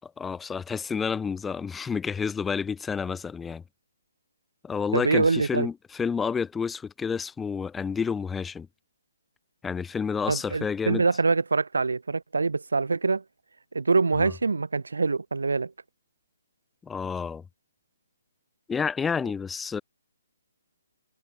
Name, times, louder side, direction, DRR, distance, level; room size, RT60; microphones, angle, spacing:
voice 1, 0.0-3.6 4.6-8.7 9.6-11.0 14.2-14.3 16.8-17.4 18.7-19.8, left 6 dB, 10° left, 4.9 m, -30 dB
voice 2, 4.9-5.7 10.3-13.2 13.7-15.7, right 4 dB, 70° right, 6.4 m, -24 dB
figure-of-eight pair, 135°, 0 cm